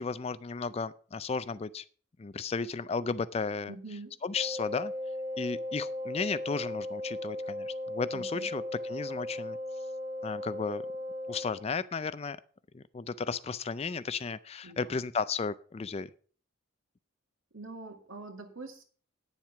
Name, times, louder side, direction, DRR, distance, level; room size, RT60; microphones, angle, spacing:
voice 1, 0.0-1.8 2.2-3.7 4.2-4.9 5.4-9.6 10.2-10.8 11.3-12.4 12.7-16.1, left 5 dB, 30° left, 16 dB, 0.4 m, -34 dB
voice 2, 3.7-4.2 8.1-8.5 14.6-15.0 17.5-18.8, right 3 dB, 75° right, 5 dB, 2.1 m, -44 dB
Wind instrument woodwind instrument, 4.3-11.6, left 1 dB, 30° right, 2.8 m, -37 dB
9.6 x 7.3 x 5.9 m, 0.43 s
head